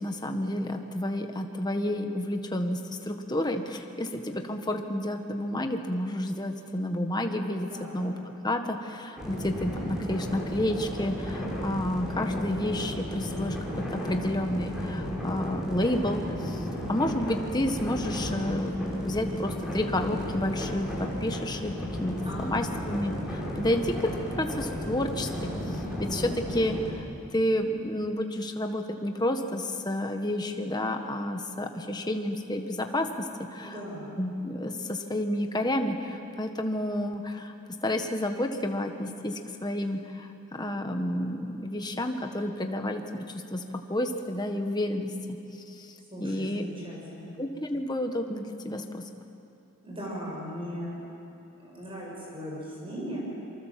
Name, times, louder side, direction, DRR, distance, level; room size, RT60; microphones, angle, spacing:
voice 1, 0.0-8.1 8.4-21.7 22.0-27.1 27.3-33.8 34.2-37.5 37.8-43.2 43.5-43.6 43.9-45.1 45.7-46.6 47.4-49.0, left 1 dB, 20° left, 5 dB, 1.4 m, -30 dB
voice 2, 7.7-8.1 22.3-22.9 33.6-34.1 46.1-47.3 49.8-51.0 51.6-53.2, equal, 25° right, -4 dB, 7.3 m, -38 dB
sound 1, 9.2-26.9, equal, 5° right, 5.6 m, -34 dB
27.5 x 24.5 x 7.6 m, 2.8 s
head